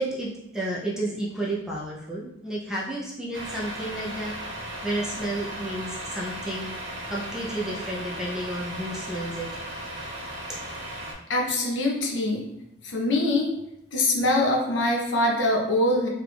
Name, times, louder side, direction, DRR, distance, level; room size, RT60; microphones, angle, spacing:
voice 1, 0.0-6.7 7.1-9.5, right 1 dB, 5° right, -5 dB, 0.5 m, -31 dB
Truck, 3.3-11.1, right 1 dB, 65° right, 0.7 m, -36 dB
voice 2, 11.3-12.5 12.8-13.5 13.9-16.1, left 1 dB, 60° left, -1 dB, 0.6 m, -23 dB
3.0 x 2.4 x 3.4 m, 0.82 s
head